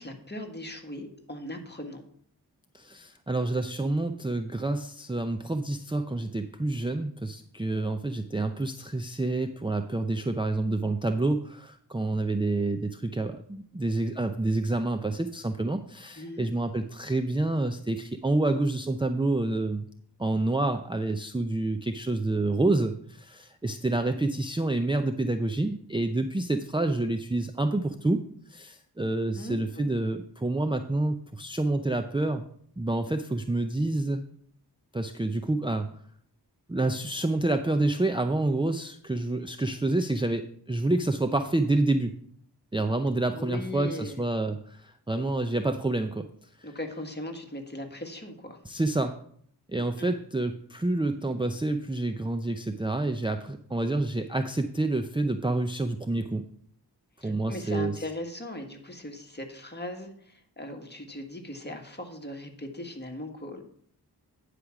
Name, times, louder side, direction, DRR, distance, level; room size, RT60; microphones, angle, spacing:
voice 1, 0.0-2.0 16.1-16.5 29.3-30.0 43.3-44.2 46.6-48.6 50.0-50.1 57.2-63.6, left 1 dB, 25° left, 3 dB, 1.7 m, -39 dB
voice 2, 2.7-19.9 20.2-28.2 28.5-32.4 32.8-34.2 34.9-35.9 36.7-42.1 42.7-46.3 48.7-49.2 49.7-56.4 57.2-57.9, right 2 dB, 10° right, 6 dB, 0.6 m, -28 dB
9.7 x 5.0 x 5.9 m, 0.63 s
wide cardioid pair, 45°, 41 cm